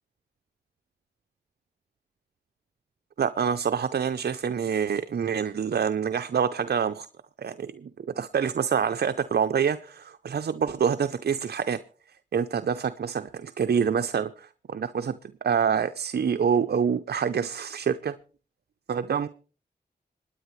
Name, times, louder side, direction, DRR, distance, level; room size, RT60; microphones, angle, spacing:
voice 1, 3.2-7.1 7.4-7.9 8.2-11.8 12.3-18.2 18.9-19.3, right 7 dB, 65° right, 0.6 m, -26 dB
27.0 x 9.8 x 3.2 m
cardioid pair, 55°, 17 cm